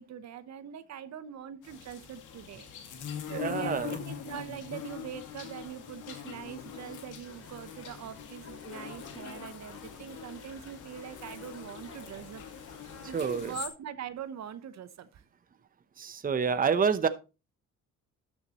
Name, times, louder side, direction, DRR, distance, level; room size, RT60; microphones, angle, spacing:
voice 1, 0.0-2.7 3.3-12.4 12.7-15.2, right 9 dB, 65° right, 0.9 m, -43 dB
sound 1, 1.6-13.7, left 9 dB, 85° left, 2.1 m, -43 dB
voice 2, 3.3-4.0 13.1-13.5 16.0-17.1, right 6 dB, 30° right, 0.8 m, -28 dB
sound 2, 7.2-13.6, left 3 dB, 50° left, 3.8 m, -51 dB
12.5 x 7.2 x 2.9 m
cardioid pair, 90°, 30 cm